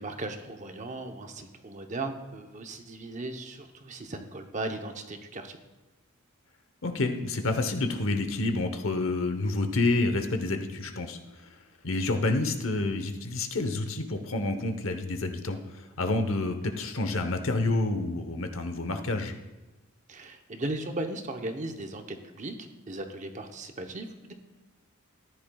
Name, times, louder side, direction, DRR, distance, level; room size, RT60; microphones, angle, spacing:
voice 1, 0.0-5.6 20.1-24.3, right 2 dB, 35° right, 5 dB, 0.8 m, -37 dB
voice 2, 6.8-11.5 11.8-19.3, left 2 dB, 65° left, 7 dB, 0.9 m, -29 dB
14.0 x 10.0 x 2.3 m, 1.1 s
head